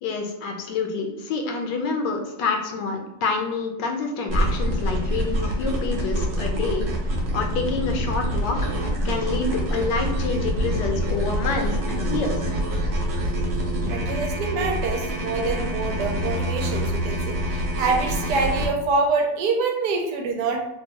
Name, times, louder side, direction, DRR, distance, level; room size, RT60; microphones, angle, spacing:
voice 1, 0.0-6.9 7.3-12.5, left 4 dB, 80° left, 3 dB, 1.2 m, -27 dB
sound 1, 4.3-18.7, equal, 60° right, 0.8 m, -26 dB
voice 2, 13.9-20.6, right 3 dB, 75° right, 2 dB, 1.1 m, -25 dB
3.5 x 2.2 x 2.7 m, 0.85 s
omnidirectional pair, 1.9 m